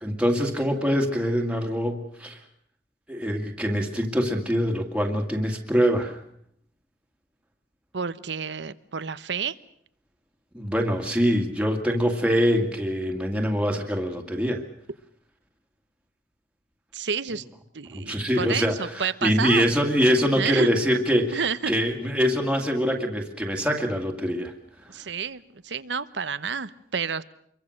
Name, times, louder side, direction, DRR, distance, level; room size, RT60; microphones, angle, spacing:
voice 1, 0.0-2.4 3.1-6.2 10.5-14.6 17.9-24.5, equal, 5° right, 1 dB, 2.2 m, -24 dB
voice 2, 7.9-9.5 16.9-17.4 17.7-19.6 20.4-20.7 21.3-21.7 24.9-27.2, right 6 dB, 80° right, 14 dB, 1.0 m, -30 dB
26.5 x 22.5 x 6.5 m, 0.68 s
head